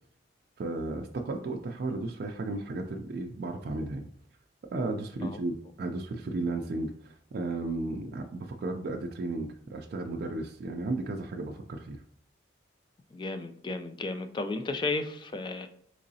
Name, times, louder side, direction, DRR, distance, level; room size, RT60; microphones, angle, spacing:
voice 1, 0.6-4.0 4.7-12.0, right 2 dB, 55° right, 3 dB, 0.3 m, -34 dB
voice 2, 13.1-15.7, left 3 dB, 25° left, 8 dB, 0.3 m, -33 dB
3.8 x 3.1 x 2.7 m, 0.64 s
head